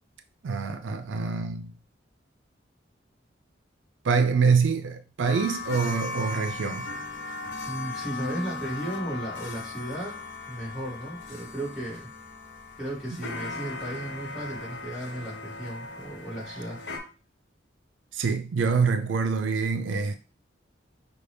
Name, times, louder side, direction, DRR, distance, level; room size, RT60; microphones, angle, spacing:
voice 1, 0.4-1.7 4.0-6.9 18.1-20.2, right 5 dB, 85° right, 0.4 m, -25 dB
sound 1, 5.2-17.0, left 3 dB, 70° left, 0.9 m, -37 dB
voice 2, 7.6-10.1 10.5-12.1 12.8-16.8, right 1 dB, ahead, 2.0 m, -35 dB
5.6 x 2.2 x 3.3 m
head